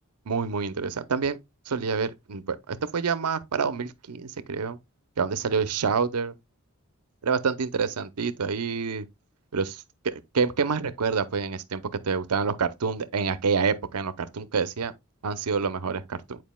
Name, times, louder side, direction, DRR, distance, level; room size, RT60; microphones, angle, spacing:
voice 1, 0.3-1.4 1.7-4.8 5.2-6.3 7.2-9.1 9.5-14.9 15.2-16.4, right 5 dB, 90° right, 0.6 m, -27 dB
9.3 x 4.6 x 2.2 m
head